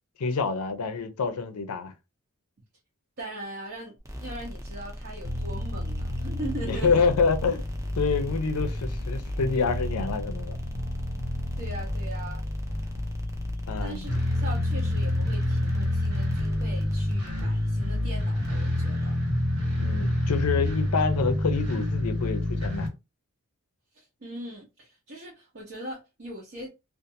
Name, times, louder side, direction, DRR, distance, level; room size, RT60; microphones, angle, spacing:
voice 1, 0.2-1.9 6.6-7.6 7.9-10.6 13.7-14.0 19.8-22.9, left 5 dB, 80° left, 0.5 m, -27 dB
voice 2, 3.2-7.0 11.6-12.4 13.8-19.2 23.9-26.7, right 1 dB, 50° right, 0.8 m, -40 dB
sound 1, 4.0-21.0, equal, 15° right, 0.5 m, -41 dB
sound 2, 5.2-22.9, left 1 dB, 80° right, 1.5 m, -29 dB
2.5 x 2.4 x 2.7 m
head